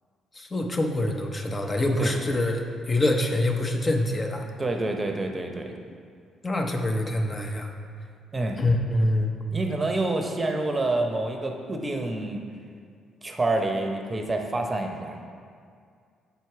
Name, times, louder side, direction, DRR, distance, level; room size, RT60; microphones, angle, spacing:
voice 1, 0.3-4.4 6.4-7.7 8.6-9.3, left 1 dB, 30° left, 3 dB, 0.9 m, -25 dB
voice 2, 4.6-5.7 8.3-8.6 9.5-12.4 13.2-15.2, right 2 dB, 25° right, 3 dB, 0.8 m, -27 dB
7.1 x 4.5 x 4.7 m, 2.2 s
hypercardioid pair, 45°, 0 cm